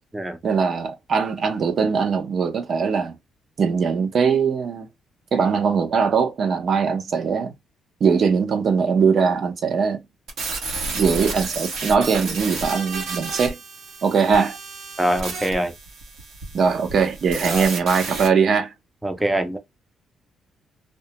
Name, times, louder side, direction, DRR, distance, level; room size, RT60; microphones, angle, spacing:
voice 1, 0.4-3.2 3.6-4.9 5.3-7.5 8.0-10.0 10.9-13.6 14.0-14.6 16.5-18.7, right 5 dB, 55° right, 0.6 m, -21 dB
sound 1, 10.3-18.3, right 4 dB, 85° right, 0.8 m, -31 dB
voice 2, 15.0-15.7 17.5-17.7 19.0-19.6, right 1 dB, 10° right, 0.5 m, -23 dB
2.2 x 2.1 x 2.8 m
cardioid pair, 90°, 0 cm